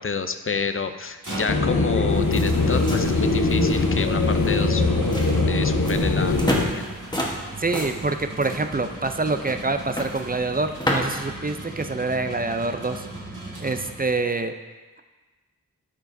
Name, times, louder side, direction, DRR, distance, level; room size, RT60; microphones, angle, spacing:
voice 1, 0.0-4.8 5.5-6.8, left 5 dB, 40° left, 8 dB, 0.5 m, -29 dB
sound 1, 0.9-14.4, right 2 dB, 55° right, 1.8 m, -38 dB
sound 2, 1.5-6.6, left 3 dB, 70° left, 0.8 m, -21 dB
sound 3, 2.1-11.3, equal, 10° left, 1.1 m, -32 dB
voice 2, 7.6-13.1 13.6-14.5, right 3 dB, 25° right, 8 dB, 0.4 m, -26 dB
12.5 x 4.8 x 2.6 m, 1.3 s
wide cardioid pair, 50°, 35 cm